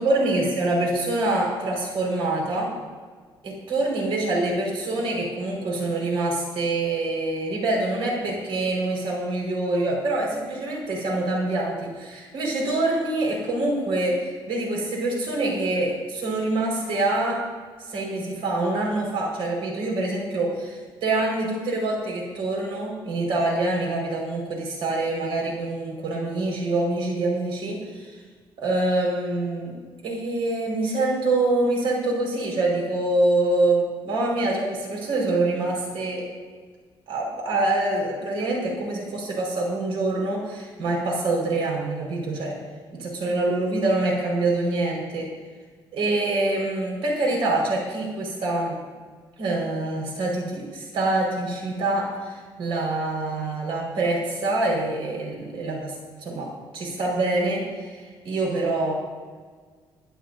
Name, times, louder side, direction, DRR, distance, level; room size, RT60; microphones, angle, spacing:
voice 1, 0.0-2.7 3.4-17.4 17.9-28.2 28.6-29.8 30.0-36.3 37.1-42.5 42.9-45.3 45.9-48.8 49.4-56.5 56.7-58.9, right 2 dB, 80° right, -2 dB, 5.3 m, -25 dB
26.5 x 11.5 x 2.8 m, 1.5 s
cardioid pair, 140°, 9 cm